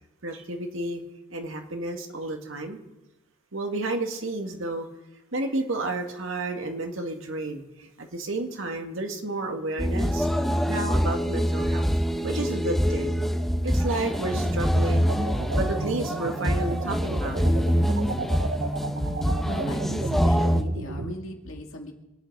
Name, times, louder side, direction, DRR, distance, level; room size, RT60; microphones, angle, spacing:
voice 1, 0.2-1.0 1.3-2.8 3.5-4.9 5.3-10.3 10.7-11.9 12.2-13.2 13.6-15.1 15.6-17.5, right 2 dB, 75° right, 4 dB, 2.0 m, -31 dB
sound 1, 9.8-20.6, equal, ahead, 0.9 m, -25 dB
sound 2, 14.3-21.1, right 3 dB, 60° right, 0.7 m, -33 dB
voice 2, 19.5-21.9, left 1 dB, 85° left, 2 dB, 2.2 m, -38 dB
26.5 x 9.1 x 4.7 m, 0.98 s
head